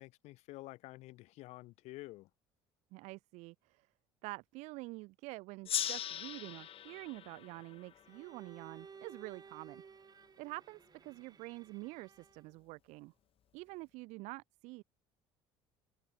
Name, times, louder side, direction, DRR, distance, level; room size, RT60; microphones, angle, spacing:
voice 1, 0.0-2.3, left 19 dB, 65° left, 6.5 m, -50 dB
voice 2, 2.9-3.9 4.2-9.8 10.4-13.1 13.5-14.8, right 23 dB, 70° right, 3.8 m, -47 dB
Gong, 5.6-8.8, left 10 dB, 50° left, 6.7 m, -40 dB
Bowed string instrument, 8.1-12.6, right 6 dB, 35° right, 7.8 m, -57 dB
hypercardioid pair, 75°, 12 cm